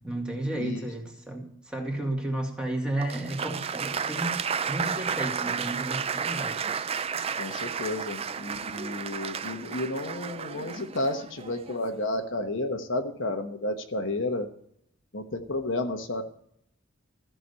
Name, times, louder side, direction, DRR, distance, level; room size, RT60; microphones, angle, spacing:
voice 1, 0.0-6.7, right 1 dB, 5° right, 0 dB, 2.2 m, -33 dB
Applause, 3.0-11.9, right 6 dB, 30° right, 0.4 m, -32 dB
voice 2, 7.3-14.5 15.1-16.2, left 2 dB, 60° left, 5 dB, 1.2 m, -31 dB
14.5 x 6.2 x 8.3 m, 0.69 s
head